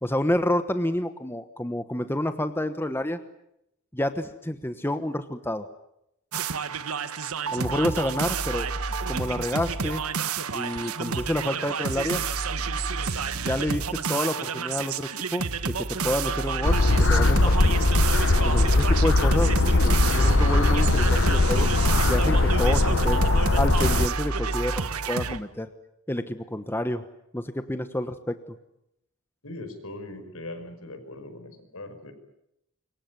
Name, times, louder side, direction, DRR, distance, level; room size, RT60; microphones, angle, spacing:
voice 1, 0.0-3.2 3.9-5.7 7.5-8.7 9.1-10.0 10.5-12.2 13.3-16.8 17.1-17.8 18.4-21.7 22.1-23.2 23.6-25.7 26.1-27.0 27.3-28.4, left 1 dB, 10° left, 9 dB, 1.1 m, -29 dB
sound 1, 6.3-25.4, right 5 dB, 85° right, 1.5 m, -30 dB
sound 2, 16.6-24.1, left 2 dB, 60° left, 1.0 m, -20 dB
voice 2, 29.4-32.1, left 2 dB, 75° left, 8 dB, 5.5 m, -40 dB
26.0 x 23.5 x 9.5 m, 0.82 s
head